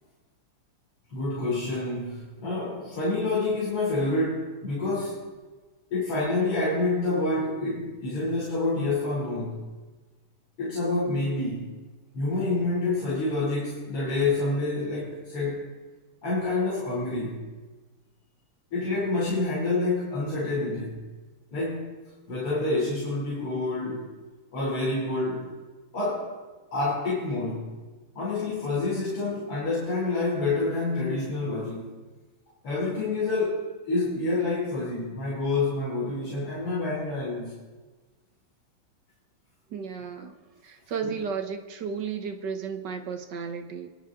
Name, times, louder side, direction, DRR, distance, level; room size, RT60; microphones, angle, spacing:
voice 1, 1.1-5.3 5.9-9.7 10.6-11.7 12.1-15.7 16.2-17.4 18.7-21.0 21.5-21.9 22.3-24.1 24.5-25.5 25.9-26.4 26.7-27.7 28.2-31.9 32.6-37.5 41.0-41.2, left 2 dB, 90° left, -6 dB, 4.2 m, -28 dB
voice 2, 39.7-40.4 40.6-43.9, right 6 dB, 60° right, 7 dB, 1.5 m, -33 dB
26.5 x 11.0 x 3.7 m, 1.3 s
omnidirectional pair, 2.4 m